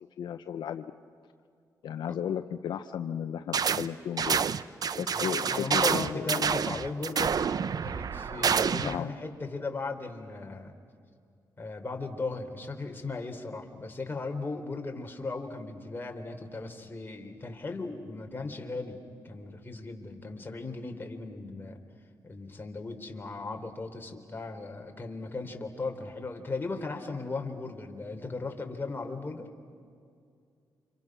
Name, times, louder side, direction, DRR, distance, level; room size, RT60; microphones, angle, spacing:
voice 1, 0.2-0.9 1.8-4.4 5.0-6.5 8.8-9.1, left 9 dB, 80° left, 9 dB, 0.8 m, -34 dB
sound 1, 3.5-3.9 4.2-9.0, right 6 dB, 55° right, 0.7 m, -28 dB
voice 2, 5.1-7.4 7.8-10.7 11.6-19.0 19.2-21.8 22.2-29.5, left 3 dB, 30° left, 3 dB, 3.6 m, -37 dB
30.0 x 27.0 x 6.2 m, 2.3 s
cardioid pair, 75°, 8 cm